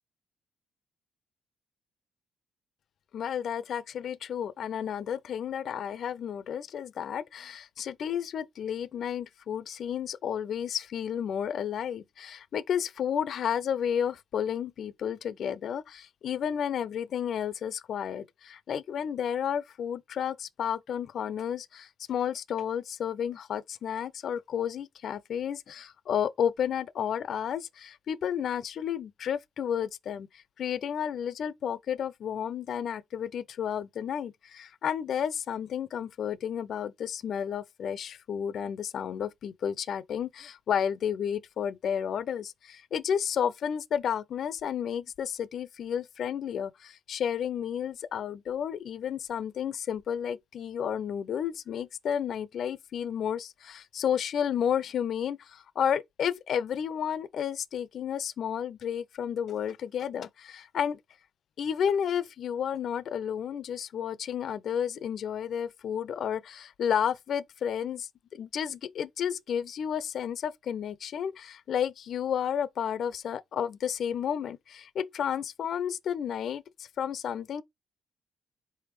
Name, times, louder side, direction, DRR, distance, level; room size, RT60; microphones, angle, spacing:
voice 1, 3.1-61.0 61.6-77.6, left 8 dB, 65° left, 0.4 m, -32 dB
4.4 x 3.4 x 3.1 m
cardioid pair, 90°, 0 cm